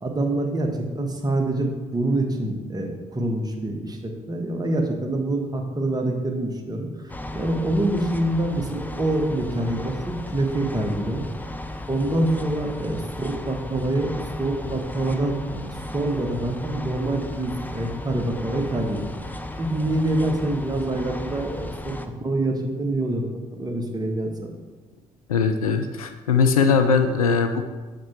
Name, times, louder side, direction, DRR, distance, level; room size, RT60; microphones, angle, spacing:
voice 1, 0.0-6.9 7.3-11.3 11.9-14.1 14.4-19.1 19.6-24.5, right 1 dB, 20° right, 2 dB, 1.4 m, -26 dB
sound 1, 7.1-22.1, left 1 dB, 10° left, 0.6 m, -35 dB
voice 2, 25.3-27.6, left 5 dB, 80° left, 7 dB, 0.5 m, -20 dB
7.4 x 5.1 x 4.6 m, 1.3 s
figure-of-eight pair, 45°, 18 cm